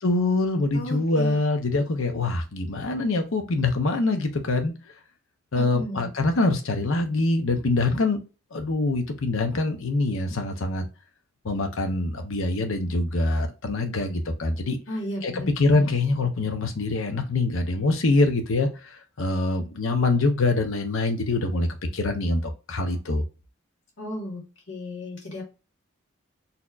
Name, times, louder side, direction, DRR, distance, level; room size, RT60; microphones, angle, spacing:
voice 1, 0.0-4.7 5.5-8.2 8.5-10.9 11.4-14.8 15.2-18.7 19.2-21.7 21.9-23.2, left 2 dB, 80° left, 0.8 m, -24 dB
voice 2, 0.7-1.4 5.6-6.1 14.9-15.9 24.0-25.4, left 1 dB, 65° left, 1.7 m, -34 dB
4.2 x 2.8 x 2.4 m
head